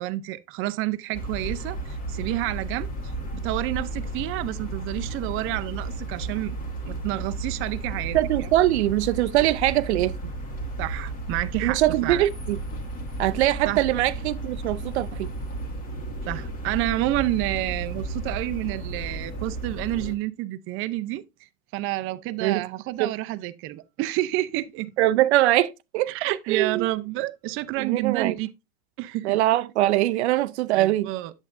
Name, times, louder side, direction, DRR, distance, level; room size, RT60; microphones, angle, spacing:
voice 1, 0.0-2.9 3.3-6.6 6.9-8.5 10.8-12.2 13.7-13.8 16.2-21.2 21.7-24.9 26.1-28.5 29.0-29.4 30.7-31.3, right 16 dB, 40° right, 0.6 m, -29 dB
sound 1, 1.1-20.1, right 2 dB, 25° left, 1.7 m, -33 dB
voice 2, 8.1-10.3 11.6-12.6 13.2-15.3 22.4-22.6 23.0-23.1 25.0-26.1 26.5-26.9 27.8-28.4 29.2-31.1, right 15 dB, 90° right, 0.5 m, -22 dB
8.5 x 7.3 x 2.6 m
supercardioid pair, 125°, 32 cm